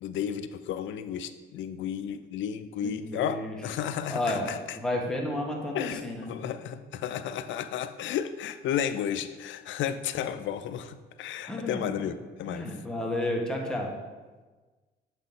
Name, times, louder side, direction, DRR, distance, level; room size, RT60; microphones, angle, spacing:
voice 1, 0.0-4.8 5.7-12.7, left 9 dB, 70° left, 12 dB, 0.4 m, -33 dB
voice 2, 2.8-3.5 4.1-4.5 4.7-6.3 11.5-11.8 12.5-13.9, left 1 dB, 5° left, -1 dB, 1.2 m, -31 dB
7.3 x 3.9 x 3.6 m, 1.3 s
cardioid pair, 90°, 20 cm